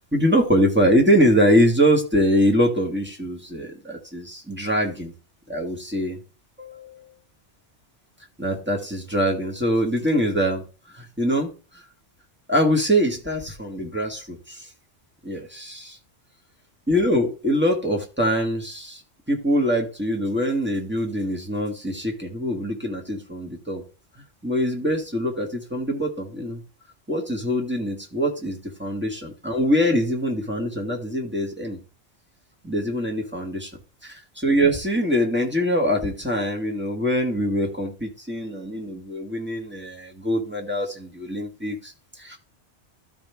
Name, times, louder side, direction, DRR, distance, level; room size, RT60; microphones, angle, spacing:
voice 1, 0.1-5.1 5.5-6.2 6.6-7.1 8.4-11.8 12.5-14.7 15.2-16.0 16.9-19.0 19.3-23.8 24.2-26.6 27.1-31.8 32.6-33.7 34.0-42.4, equal, 10° right, 0 dB, 1.7 m, -23 dB
13.0 x 4.9 x 3.5 m, 0.35 s
omnidirectional pair, 1.2 m